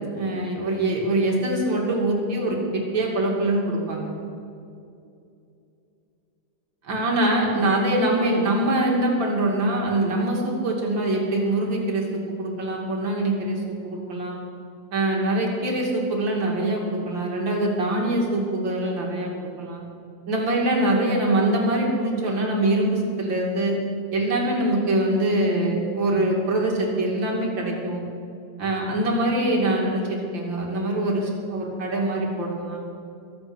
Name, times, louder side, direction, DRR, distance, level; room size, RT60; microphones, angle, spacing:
voice 1, 0.1-2.6 2.9-4.1 6.8-14.4 14.9-19.8 20.3-23.8 24.1-28.0 28.6-32.8, right 1 dB, 70° right, -1 dB, 3.3 m, -24 dB
22.5 x 8.2 x 6.2 m, 2.5 s
omnidirectional pair, 2.1 m